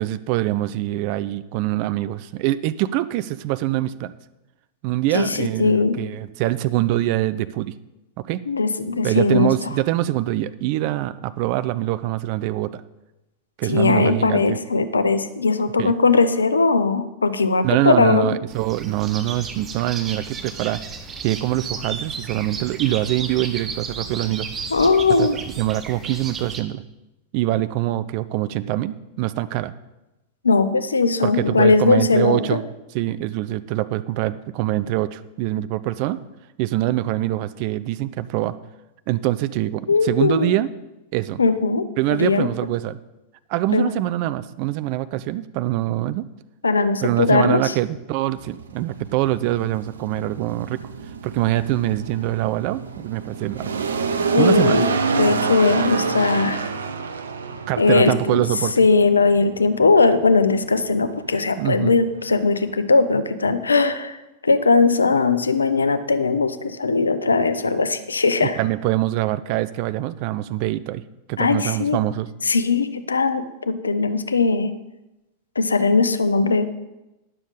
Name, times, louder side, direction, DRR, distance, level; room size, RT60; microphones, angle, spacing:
voice 1, 0.0-4.1 4.8-7.8 8.3-8.4 9.0-12.8 13.6-14.6 15.8-15.9 17.6-20.8 21.2-24.5 25.2-25.3 25.6-26.8 27.3-29.7 31.2-32.6 32.9-36.2 36.6-38.5 39.1-40.7 41.1-41.4 42.0-43.0 43.5-46.3 47.0-50.8 51.2-53.8 54.4-54.8 57.7-58.7 61.6-62.0 68.6-71.0 71.3-72.3, right 15 dB, 45° right, 15 dB, 0.4 m, -24 dB
voice 2, 5.1-6.0 8.5-9.5 13.7-18.3 24.7-25.4 30.4-32.6 39.9-40.6 41.4-42.5 43.7-43.9 46.6-47.7 54.3-54.9 55.2-56.7 57.8-58.4 58.8-68.6 71.4-72.0 72.4-74.7 75.6-76.7, left 4 dB, 75° left, 11 dB, 0.6 m, -19 dB
sound 1, 18.5-26.6, right 5 dB, 25° right, 1.2 m, -34 dB
sound 2, 48.3-62.8, right 5 dB, 70° right, 0.8 m, -28 dB
11.0 x 7.1 x 5.3 m, 0.97 s
figure-of-eight pair, 90°, 0 cm